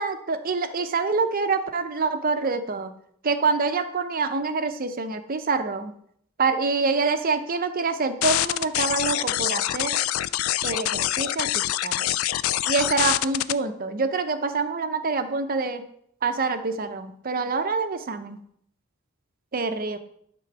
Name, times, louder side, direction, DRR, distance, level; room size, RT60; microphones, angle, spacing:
voice 1, 0.0-2.9 3.2-5.9 6.4-10.0 10.6-12.2 12.7-15.9 16.2-18.4 19.5-20.0, right 4 dB, 45° right, 8 dB, 0.7 m, -26 dB
sound 1, 8.2-13.5, left 13 dB, 80° left, 0.3 m, -25 dB
11.0 x 3.8 x 6.0 m, 0.69 s
head